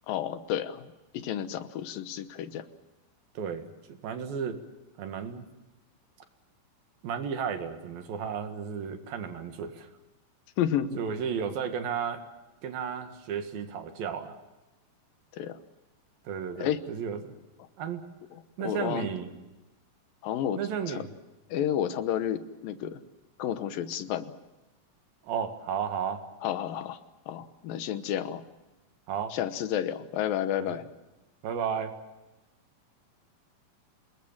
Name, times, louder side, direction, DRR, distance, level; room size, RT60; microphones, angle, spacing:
voice 1, 0.1-0.9 1.1-2.7 10.6-11.0 15.3-15.6 16.6-16.8 18.3-19.1 20.2-20.6 20.9-21.1 21.5-23.0 23.4-24.3 26.4-27.0 27.3-28.4 29.3-30.9, left 10 dB, 80° left, 11 dB, 2.8 m, -31 dB
voice 2, 3.4-4.6 5.0-5.5 7.0-9.9 11.0-12.2 12.6-14.4 16.3-17.4 17.8-18.0 18.6-19.3 20.6-21.1 25.2-26.2 29.1-29.4 30.6-30.8 31.4-32.0, right 7 dB, 85° right, 7 dB, 3.7 m, -33 dB
28.0 x 20.0 x 7.4 m, 1.1 s
omnidirectional pair, 4.1 m